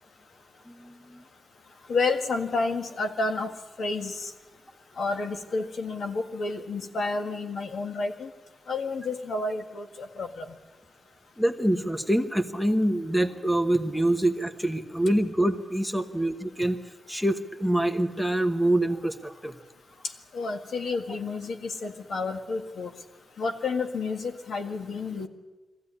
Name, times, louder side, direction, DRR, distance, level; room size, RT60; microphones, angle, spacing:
voice 1, 0.7-1.2 11.4-16.8 17.1-19.6, right 1 dB, 5° left, 9 dB, 1.1 m, -25 dB
voice 2, 1.9-3.5 3.8-4.3 5.0-8.3 8.7-10.5 20.3-22.9 23.4-25.3, left 3 dB, 75° left, 6 dB, 1.8 m, -30 dB
21.5 x 15.0 x 9.8 m, 1.2 s
wide cardioid pair, 145°, 0 cm